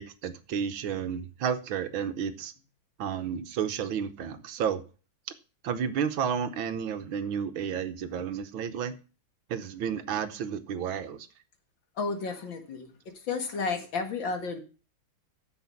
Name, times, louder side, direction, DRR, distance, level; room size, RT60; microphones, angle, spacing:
voice 1, 0.0-2.5 3.0-4.8 5.6-9.0 9.5-11.3, right 7 dB, 75° right, 1.8 m, -31 dB
voice 2, 12.0-12.9 13.2-14.6, left 4 dB, 65° left, 2.6 m, -32 dB
10.0 x 7.1 x 5.8 m
omnidirectional pair, 2.3 m